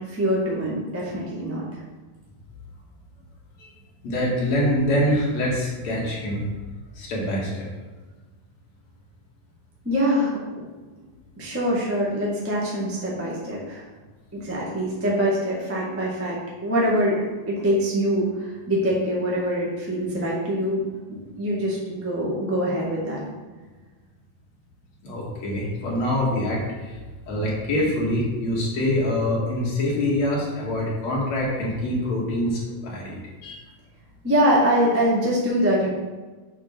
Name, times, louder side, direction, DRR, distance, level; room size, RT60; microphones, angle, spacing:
voice 1, 0.1-1.6 9.8-10.4 11.4-13.8 14.3-17.2 17.5-20.8 21.1-23.2 34.2-35.9, equal, 10° right, -5 dB, 0.9 m, -24 dB
voice 2, 4.0-6.5 7.0-7.7 25.0-26.9 27.3-33.6, left 1 dB, 60° left, -4 dB, 3.1 m, -25 dB
7.8 x 4.5 x 6.0 m, 1.3 s
omnidirectional pair, 3.5 m